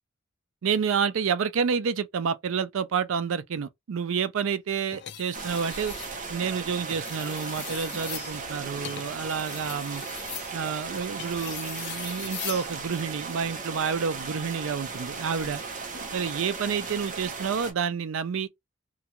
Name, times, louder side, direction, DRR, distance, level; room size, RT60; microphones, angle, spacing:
voice 1, 0.6-5.9 6.3-10.0 10.5-15.6 16.1-18.5, right 6 dB, 75° right, 0.4 m, -29 dB
sound 1, 4.9-6.2 6.8-12.7 14.1-14.4, left 12 dB, 55° left, 0.4 m, -40 dB
sound 2, 5.3-17.7, right 4 dB, 40° right, 0.6 m, -36 dB
2.5 x 2.2 x 2.8 m
head